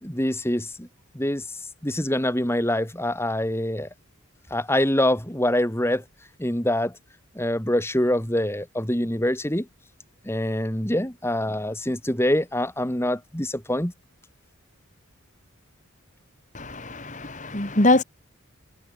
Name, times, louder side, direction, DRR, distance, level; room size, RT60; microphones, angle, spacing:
voice 1, 0.0-0.9 1.1-3.9 4.5-6.0 6.4-7.0 7.3-9.7 10.2-13.9, left 1 dB, 10° left, 2.8 m, -25 dB
voice 2, 16.5-18.0, left 2 dB, 35° left, 3.2 m, -23 dB
head